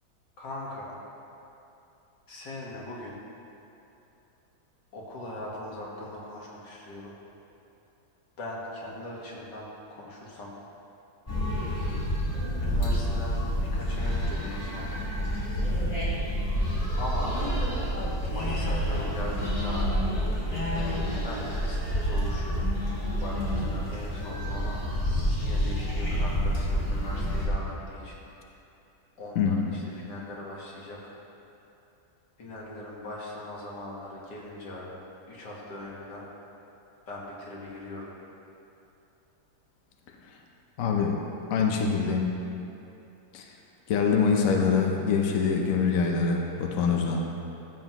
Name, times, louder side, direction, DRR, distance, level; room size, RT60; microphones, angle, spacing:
voice 1, 0.4-1.0 2.3-3.2 4.9-7.1 8.4-10.6 12.6-15.0 17.0-17.3 18.3-20.0 21.2-22.7 23.2-24.8 25.4-28.2 29.2-31.2 32.4-35.0 35.3-36.3 37.1-38.1, left 1 dB, 90° left, -4 dB, 2.2 m, -40 dB
sound 1, 11.3-27.5, equal, 20° left, 1.6 m, -28 dB
voice 2, 29.4-29.8 40.8-41.2 41.5-42.3 43.3-43.5 43.9-47.2, left 5 dB, 60° left, 1 dB, 1.1 m, -24 dB
14.0 x 7.5 x 3.0 m, 2.9 s
omnidirectional pair, 1.8 m